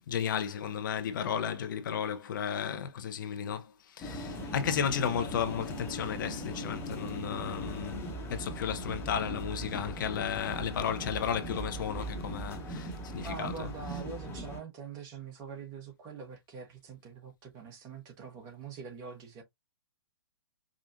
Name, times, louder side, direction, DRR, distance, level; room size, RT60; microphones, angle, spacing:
voice 1, 0.1-8.0 8.3-13.7, left 8 dB, 50° left, 0.8 m, -34 dB
sound 1, 4.0-14.6, equal, 15° left, 1.1 m, -39 dB
voice 2, 13.2-19.4, right 5 dB, 25° right, 1.3 m, -44 dB
5.0 x 2.4 x 2.6 m
figure-of-eight pair, 125°, 13 cm